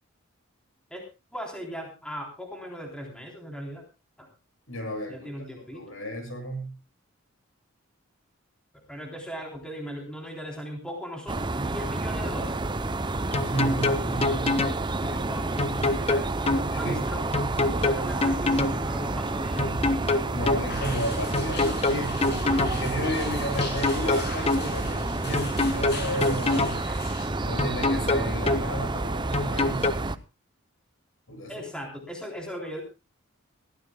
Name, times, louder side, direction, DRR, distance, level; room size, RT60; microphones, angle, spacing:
voice 1, 1.3-3.8 4.2-4.3 5.1-6.0 8.9-12.6 15.0-15.7 16.0-16.1 16.7-17.2 17.7-19.7 31.5-32.8, equal, 5° left, 0 dB, 3.5 m, -38 dB
voice 2, 4.7-5.3 5.7-6.7 13.3-14.7 15.0-15.2 16.1-17.0 20.3-22.3 22.7-26.8 27.4-29.9 31.3-31.6, equal, 70° left, 4 dB, 7.9 m, -33 dB
sound 1, 11.3-30.2, right 2 dB, 20° right, 0.6 m, -30 dB
sound 2, 13.3-14.8 15.6-16.6 17.3-18.8 19.6-20.7 21.3-22.8 23.6-24.6 25.3-26.8 27.6-28.7 29.3-29.9, left 3 dB, 30° left, 1.0 m, -25 dB
sound 3, 20.7-27.3, left 4 dB, 55° left, 7.1 m, -40 dB
22.0 x 15.0 x 2.3 m, 0.30 s
head